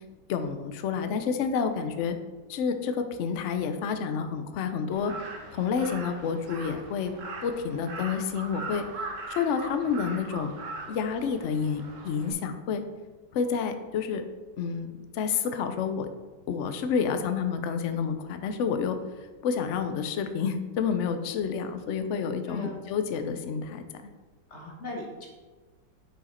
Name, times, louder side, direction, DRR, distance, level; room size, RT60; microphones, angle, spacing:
voice 1, 0.3-2.2 2.5-5.1 5.5-7.1 7.4-8.8 9.4-10.6 10.9-12.8 13.3-14.2 14.6-16.1 16.5-19.0 19.4-23.8, left 6 dB, 60° left, 8 dB, 0.7 m, -29 dB
Crow, 4.9-12.3, right 3 dB, 55° right, 1.1 m, -40 dB
voice 2, 22.5-22.8 24.5-25.3, left 2 dB, 45° left, 0 dB, 1.3 m, -38 dB
8.9 x 4.9 x 4.2 m, 1.3 s
omnidirectional pair, 1.9 m